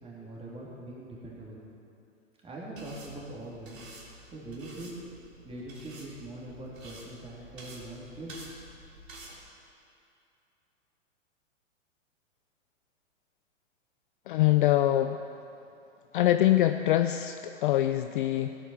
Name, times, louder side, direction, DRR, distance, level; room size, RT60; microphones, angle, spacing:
voice 1, 0.0-1.6 2.4-3.8 4.3-4.9 5.4-8.4, right 1 dB, 15° right, -5 dB, 3.4 m, -42 dB
sound 1, 2.8-9.4, right 1 dB, 85° right, 3.4 m, -49 dB
voice 2, 14.3-15.2 16.1-18.6, left 13 dB, 40° left, 9 dB, 0.5 m, -24 dB
16.0 x 9.0 x 5.9 m, 2.6 s
hypercardioid pair, 125°, 39 cm